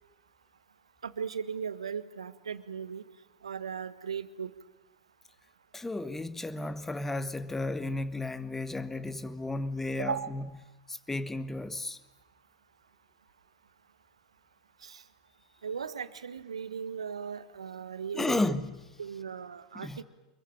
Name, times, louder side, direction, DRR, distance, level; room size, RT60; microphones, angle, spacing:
voice 1, 1.0-3.0 3.4-4.5 10.0-10.3 14.8-15.0 15.6-18.4 19.0-20.0, right 6 dB, 80° right, 1.5 m, -37 dB
voice 2, 5.7-10.5 10.9-12.0 18.1-18.8 19.7-20.0, left 2 dB, 10° left, 1.5 m, -33 dB
25.5 x 22.5 x 9.0 m
hypercardioid pair, 95°, 3 cm